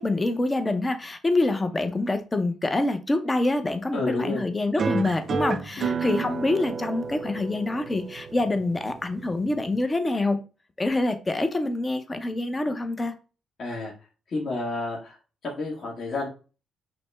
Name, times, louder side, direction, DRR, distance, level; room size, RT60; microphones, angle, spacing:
voice 1, 0.0-10.4 10.8-13.1, left 2 dB, 20° left, 0.7 m, -26 dB
voice 2, 3.9-4.4 5.8-6.0 13.6-13.9 14.3-15.2 15.4-16.3, left 2 dB, 50° left, 1.3 m, -30 dB
sound 1, 4.8-9.8, right 6 dB, 50° right, 0.4 m, -31 dB
5.9 x 2.1 x 3.4 m
cardioid pair, 90°, 0 cm